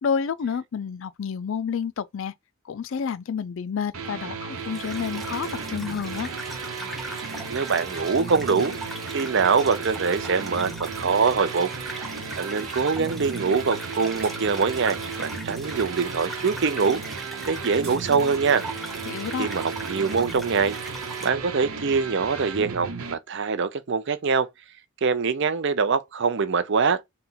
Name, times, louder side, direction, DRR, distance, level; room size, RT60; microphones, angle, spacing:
voice 1, 0.0-2.3 2.6-6.3 19.1-19.5, left 6 dB, 60° left, 0.4 m, -29 dB
sound 1, 3.9-23.1, right 5 dB, 80° right, 0.9 m, -35 dB
sound 2, 4.5-21.3, right 1 dB, ahead, 0.6 m, -40 dB
voice 2, 7.5-8.7 9.1-11.7 12.4-17.0 17.5-18.6 19.4-20.8 21.2-24.5 25.0-27.0, right 5 dB, 55° right, 0.5 m, -24 dB
sound 3, 13.7-13.9 14.2-14.4 17.4-18.0, right 5 dB, 30° right, 1.0 m, -45 dB
4.2 x 2.2 x 3.9 m
head